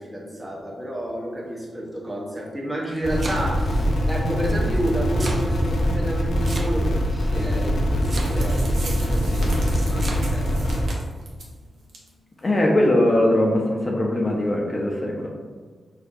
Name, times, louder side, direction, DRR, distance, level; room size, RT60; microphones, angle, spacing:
voice 1, 0.0-10.7, right 1 dB, 15° right, -4 dB, 0.9 m, -30 dB
Domestic sounds home sounds, 2.7-3.7 4.7-5.5 6.4-7.1 8.0-8.6 9.7-10.2, right 2 dB, 45° right, 0.5 m, -34 dB
sound 1, 3.0-10.9, equal, 80° left, 0.6 m, -23 dB
sound 2, 8.1-11.5 11.9-12.1 12.4-12.5 13.0-13.1, right 2 dB, 85° right, 0.7 m, -39 dB
voice 2, 12.4-15.3, left 1 dB, 35° left, -1 dB, 0.5 m, -20 dB
4.4 x 2.6 x 2.5 m, 1.5 s
cardioid pair, 85°, 0 cm